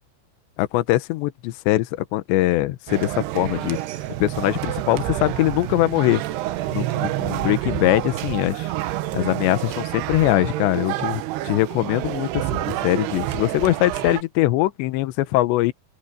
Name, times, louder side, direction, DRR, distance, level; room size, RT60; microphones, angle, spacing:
voice 1, 0.6-3.8 4.2-6.2 6.7-8.7 9.1-15.7, left 17 dB, 80° left, 3.1 m, -22 dB
sound 1, 2.9-14.2, right 15 dB, 75° right, 2.8 m, -28 dB
open air
omnidirectional pair, 5.1 m